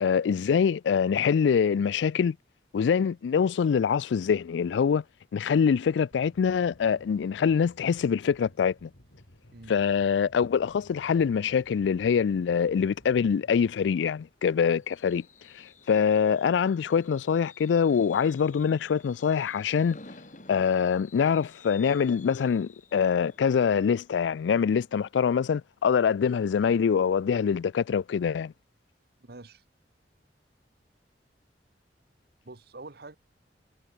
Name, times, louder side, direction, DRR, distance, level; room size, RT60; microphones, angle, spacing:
voice 1, 0.0-2.4 2.7-5.0 5.3-8.9 9.7-15.2 15.5-20.0 20.5-28.5, left 6 dB, 90° left, 0.3 m, -24 dB
sound 1, 6.1-13.7, equal, 70° left, 5.9 m, -56 dB
Fireworks, 14.2-25.5 25.9-26.2 26.4-26.5, left 4 dB, 45° left, 4.1 m, -53 dB
voice 2, 29.2-29.6 32.4-33.2, right 2 dB, 60° right, 1.4 m, -45 dB
head